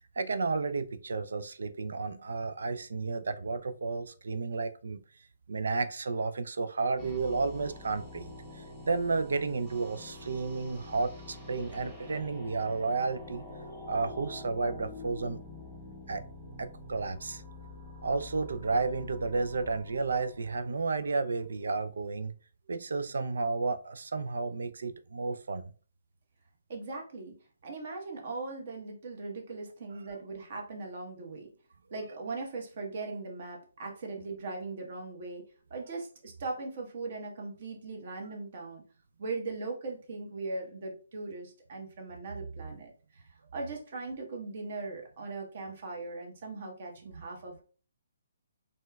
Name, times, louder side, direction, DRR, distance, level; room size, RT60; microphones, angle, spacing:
voice 1, 0.2-5.0 5.5-8.3 8.6-13.5 13.9-15.4 16.1-16.2 16.6-17.4 18.0-22.3 22.7-25.6, right 4 dB, 75° right, 11 dB, 0.3 m, -32 dB
sound 1, 7.0-21.1, left 2 dB, 10° right, 0.9 m, -46 dB
voice 2, 26.7-27.4 27.6-31.5 31.9-35.4 35.7-38.8 39.2-47.6, right 3 dB, 50° right, 1 dB, 1.0 m, -39 dB
4.2 x 2.2 x 2.2 m, 0.39 s
hypercardioid pair, 145°, 0 cm